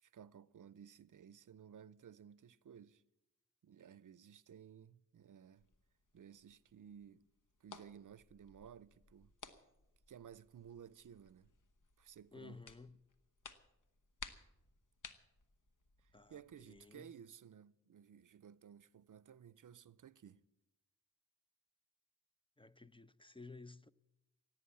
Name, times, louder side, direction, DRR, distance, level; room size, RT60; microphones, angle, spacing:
voice 1, 0.0-3.0 3.6-5.7 6.1-7.3 7.6-9.3 10.1-11.5 12.0-12.6 16.0-20.4, right 8 dB, 75° right, 0.5 m, -57 dB
sound 1, 5.6-16.8, left 4 dB, 70° left, 1.2 m, -59 dB
voice 2, 12.3-13.0 16.1-17.1 22.6-23.9, left 3 dB, 15° left, 0.4 m, -55 dB
16.5 x 9.1 x 8.3 m
wide cardioid pair, 60°, 32 cm